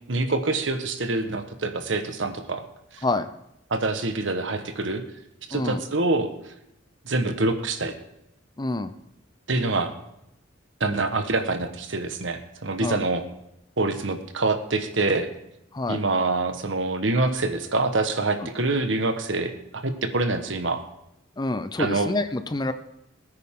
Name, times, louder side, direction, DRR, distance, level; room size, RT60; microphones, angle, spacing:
voice 1, 0.1-2.6 2.9-3.0 3.7-5.0 5.5-6.3 7.0-7.9 9.5-9.9 10.8-13.2 13.8-15.3 15.9-20.8 21.8-22.1, right 2 dB, 70° right, 7 dB, 1.3 m, -25 dB
voice 2, 5.5-5.8 8.6-8.9 12.8-13.0 15.7-16.0 21.4-22.7, left 2 dB, 20° left, 11 dB, 0.6 m, -27 dB
21.0 x 9.6 x 3.8 m, 0.83 s
head